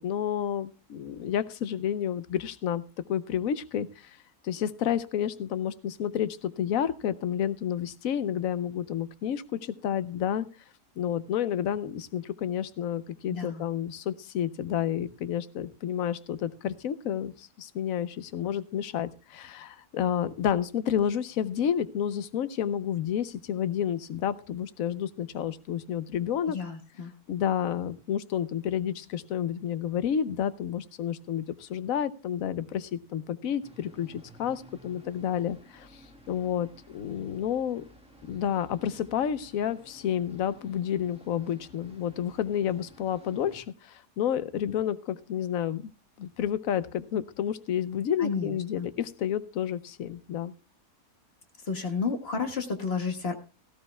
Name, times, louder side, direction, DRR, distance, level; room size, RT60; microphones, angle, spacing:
voice 1, 0.0-2.8 3.1-4.2 4.4-10.5 11.0-26.6 27.3-35.9 36.3-37.8 38.3-45.8 46.2-50.5, left 9 dB, 65° left, 15 dB, 1.1 m, -30 dB
voice 2, 13.3-13.6 26.5-27.1 48.2-48.9 51.7-53.4, left 5 dB, 45° left, 5 dB, 1.6 m, -31 dB
sound 1, 33.6-43.6, equal, 5° right, 1.7 m, -54 dB
17.5 x 14.0 x 2.2 m, 0.32 s
omnidirectional pair, 1.6 m